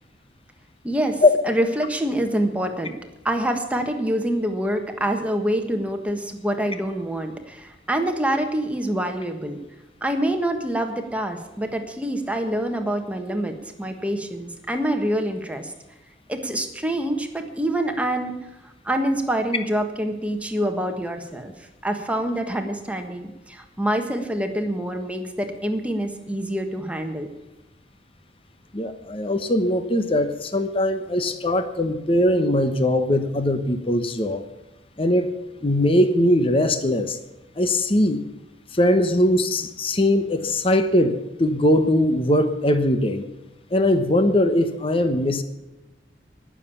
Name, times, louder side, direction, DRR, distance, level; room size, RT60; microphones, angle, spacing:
voice 1, 0.8-3.0 3.2-9.6 10.0-15.7 16.3-18.4 18.6-27.3, right 1 dB, 5° right, 4 dB, 1.4 m, -26 dB
voice 2, 28.7-34.4 35.0-35.3 35.6-37.2 37.6-38.2 38.7-43.2 43.7-45.4, left 1 dB, 30° left, 8 dB, 1.1 m, -20 dB
19.0 x 7.3 x 7.0 m, 1.0 s
head